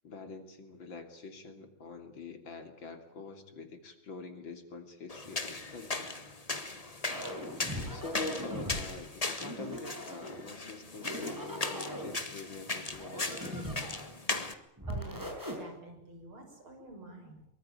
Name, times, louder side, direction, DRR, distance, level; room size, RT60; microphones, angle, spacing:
voice 1, 0.0-6.2 7.3-7.6 7.9-13.7, left 3 dB, 60° left, 7 dB, 3.7 m, -45 dB
sound 1, 5.1-14.5, left 3 dB, 20° left, 1.6 m, -38 dB
sound 2, 7.1-8.8 9.4-10.5 10.9-12.2 12.9-14.1 14.8-15.6, equal, 10° right, 6.1 m, -39 dB
voice 2, 14.9-15.3 15.6-17.5, right 1 dB, 70° right, 4 dB, 7.3 m, -49 dB
24.0 x 23.5 x 9.1 m, 0.76 s
omnidirectional pair, 2.4 m